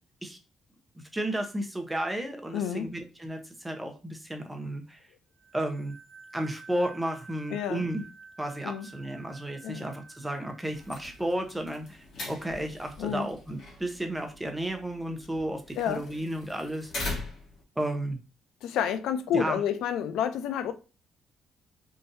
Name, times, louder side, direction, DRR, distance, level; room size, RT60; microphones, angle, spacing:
voice 1, 1.1-5.0 5.5-6.0 6.3-8.0 8.4-16.9 17.8-18.2 19.3-19.6, right 1 dB, 10° right, 0.8 m, -33 dB
voice 2, 2.5-2.9 7.5-7.9 8.6-8.9 9.6-9.9 13.0-13.3 15.8-16.0 18.6-20.7, left 8 dB, 85° left, 0.4 m, -29 dB
sound 1, 5.4-11.8, right 4 dB, 55° right, 0.5 m, -52 dB
sound 2, 10.6-17.6, left 2 dB, 65° left, 1.5 m, -41 dB
3.7 x 2.6 x 2.6 m
cardioid pair, 90°, 0 cm